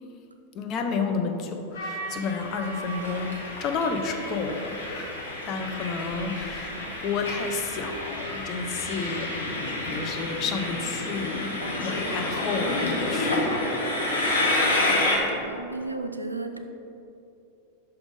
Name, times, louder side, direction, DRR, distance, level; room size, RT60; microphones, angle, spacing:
voice 1, 0.5-9.5 9.8-13.7, left 4 dB, 35° left, 4 dB, 0.6 m, -31 dB
Train, 1.8-15.2, left 1 dB, 70° left, 1.1 m, -29 dB
voice 2, 14.6-16.6, right 3 dB, 85° right, 6 dB, 0.4 m, -35 dB
5.9 x 4.9 x 3.6 m, 2.8 s
figure-of-eight pair, 90°, 0 cm